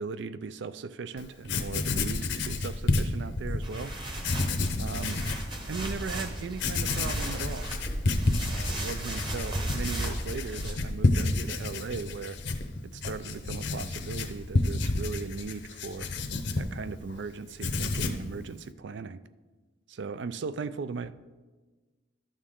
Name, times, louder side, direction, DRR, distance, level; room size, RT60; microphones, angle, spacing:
voice 1, 0.0-3.9 4.8-5.2 5.6-7.7 8.5-12.4 12.8-16.1 16.6-19.2 19.9-21.1, right 4 dB, 65° right, 14 dB, 0.4 m, -38 dB
Writing, 1.2-1.3 1.5-3.6 4.2-5.5 5.9-6.0 6.5-17.2 17.5-18.3, left 2 dB, 65° left, 0.7 m, -30 dB
sound 1, 3.6-10.7, right 1 dB, 25° right, 1.0 m, -35 dB
12.5 x 6.4 x 3.7 m, 1.3 s
head